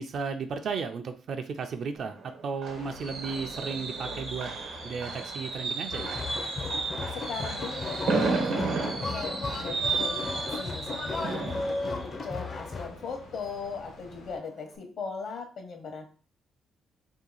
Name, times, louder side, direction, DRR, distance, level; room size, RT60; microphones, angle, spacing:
voice 1, 0.0-4.6 4.8-6.2, right 5 dB, 60° right, 6 dB, 0.5 m, -34 dB
Fireworks, 2.0-13.7 14.0-14.3 14.6-14.7, right 4 dB, 75° right, 1.0 m, -33 dB
sound 1, 2.7-14.4, left 4 dB, 90° left, 1.1 m, -50 dB
sound 2, 5.9-12.9, left 3 dB, 40° left, 0.6 m, -35 dB
voice 2, 7.1-11.5 11.9-16.0, left 5 dB, 60° left, 5 dB, 0.9 m, -39 dB
2.8 x 2.7 x 3.9 m, 0.38 s
cardioid pair, 90°, 0 cm